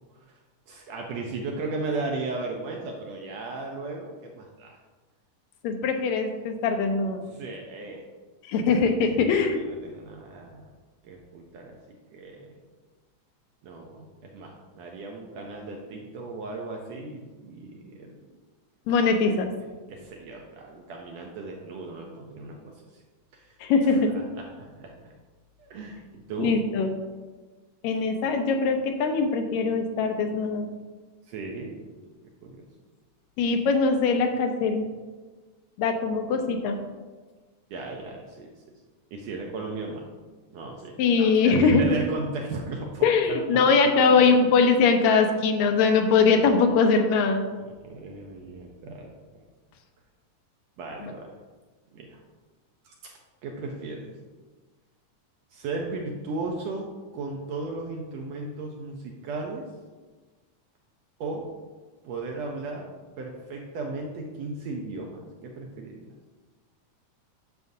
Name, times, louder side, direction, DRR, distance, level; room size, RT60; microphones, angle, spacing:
voice 1, 0.7-4.8 7.3-8.0 8.7-8.8 9.2-10.6 11.0-11.8 12.1-12.6 13.6-18.2 19.9-23.0 23.3-23.5 23.9-25.1 25.6-26.6 31.3-31.8 32.4-32.6 37.7-38.5 39.1-40.0 40.5-43.6 44.0-44.2 47.5-49.4 50.8-51.3 51.9-52.2 52.8-52.9 53.4-54.1 55.5-56.9 57.1-59.6 61.2-61.5 62.0-62.9 63.2-66.0, right 3 dB, 75° right, 0 dB, 1.6 m, -36 dB
voice 2, 5.6-7.3 8.5-9.6 18.9-19.5 23.6-24.1 26.4-26.9 27.8-30.7 33.4-34.9 35.8-36.8 41.0-41.8 43.0-47.5, left 4 dB, 75° left, 4 dB, 1.9 m, -22 dB
9.3 x 6.3 x 2.7 m, 1.3 s
omnidirectional pair, 3.6 m